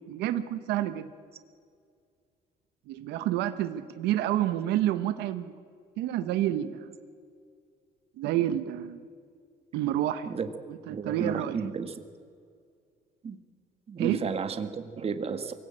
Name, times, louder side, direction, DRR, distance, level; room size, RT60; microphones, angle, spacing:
voice 1, 0.1-1.1 2.9-5.5 6.0-6.9 8.2-9.0 9.7-10.4 10.9-11.6 14.0-14.2, right 12 dB, 85° right, 10 dB, 1.1 m, -29 dB
voice 2, 10.9-11.9 13.2-13.4 13.9-15.5, right 6 dB, 35° right, 9 dB, 1.7 m, -32 dB
23.5 x 16.5 x 8.7 m, 2.2 s
cardioid pair, 110°, 17 cm